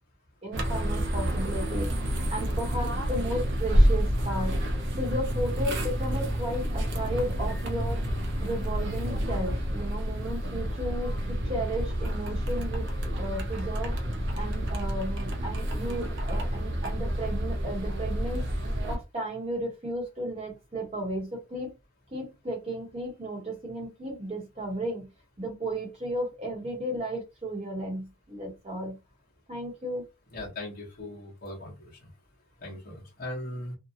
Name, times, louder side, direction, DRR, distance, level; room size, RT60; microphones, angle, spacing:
voice 1, 0.4-4.6 5.0-12.9 13.2-13.9 14.3-18.5 18.8-21.7 22.1-25.1 25.4-29.0 29.5-30.0, right 1 dB, 30° right, 1.0 m, -34 dB
sound 1, 0.5-19.0, equal, 55° right, 0.6 m, -29 dB
voice 2, 30.3-31.9 32.6-33.7, left 1 dB, 40° left, 1.0 m, -39 dB
2.7 x 2.2 x 2.7 m
head